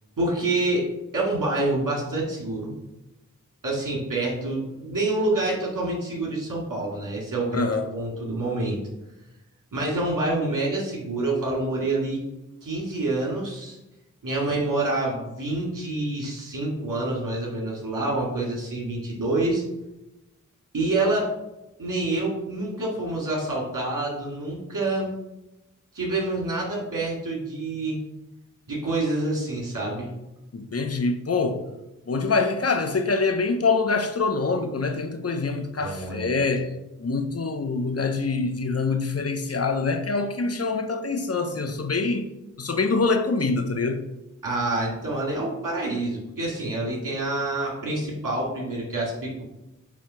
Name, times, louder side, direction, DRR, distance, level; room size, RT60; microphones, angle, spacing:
voice 1, 0.2-0.9 1.1-2.7 3.6-8.8 9.7-12.2 12.6-13.8 14.2-19.6 20.7-21.3 21.8-25.1 25.9-28.0 28.7-30.1 35.8-36.4 44.4-49.4, right 2 dB, 80° right, 2.4 m, -27 dB
voice 2, 7.5-7.9 30.5-31.6 32.1-36.7 37.0-42.3 42.6-44.0, left 4 dB, 50° left, 0.7 m, -25 dB
7.1 x 2.9 x 5.7 m
cardioid pair, 50°, 31 cm